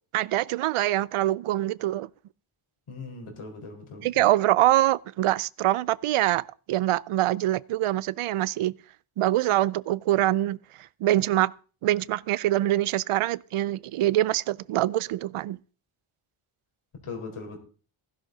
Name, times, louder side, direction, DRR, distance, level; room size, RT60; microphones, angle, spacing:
voice 1, 0.1-2.1 4.0-8.7 9.2-10.6 11.0-11.5 11.8-15.6, right 14 dB, 85° right, 0.5 m, -24 dB
voice 2, 2.9-4.2 17.0-17.6, left 4 dB, 80° left, 4.3 m, -39 dB
15.5 x 11.0 x 4.0 m
cardioid pair, 80°, 49 cm